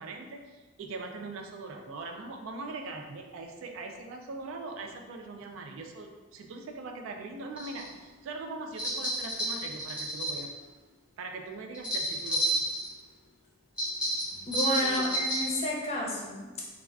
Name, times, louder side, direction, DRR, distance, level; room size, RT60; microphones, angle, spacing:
voice 1, 0.0-10.5 11.2-12.6 14.8-15.2, right 3 dB, 80° right, 3 dB, 0.3 m, -41 dB
sound 1, 7.6-7.9 8.8-10.4 11.7-12.9 13.8-15.6, right 1 dB, 5° right, 1.0 m, -30 dB
voice 2, 14.4-16.6, left 1 dB, 30° left, -3 dB, 0.5 m, -31 dB
3.5 x 2.3 x 2.2 m, 1.3 s
head